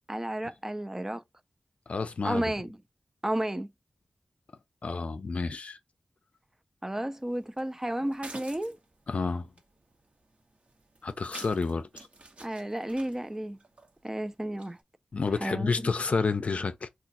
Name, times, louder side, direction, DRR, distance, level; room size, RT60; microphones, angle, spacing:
voice 1, 0.1-1.2 2.2-2.8 3.2-3.7 6.8-8.8 12.4-13.6 14.0-14.8 15.4-15.7, right 1 dB, 15° right, 0.3 m, -32 dB
voice 2, 1.9-2.4 4.8-5.8 9.1-9.5 11.0-12.1 15.1-16.9, left 4 dB, 65° left, 0.4 m, -30 dB
sound 1, 7.2-14.8, right 2 dB, 60° right, 0.9 m, -50 dB
2.4 x 2.3 x 3.9 m
cardioid pair, 55°, 2 cm